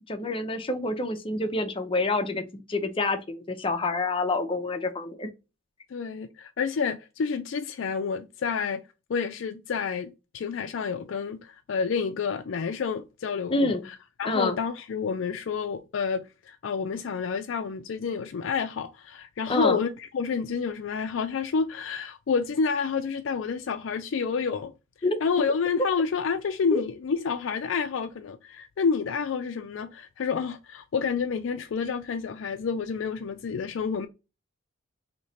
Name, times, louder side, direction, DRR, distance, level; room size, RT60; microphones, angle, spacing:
voice 1, 0.1-5.3 13.5-13.8 14.2-14.6 19.5-19.8 25.0-25.2 26.7-26.8, left 2 dB, 25° left, 0.6 m, -27 dB
voice 2, 5.9-8.8 9.1-13.8 14.2-24.7 25.2-34.1, left 5 dB, 70° left, 0.4 m, -29 dB
3.1 x 2.8 x 4.1 m
head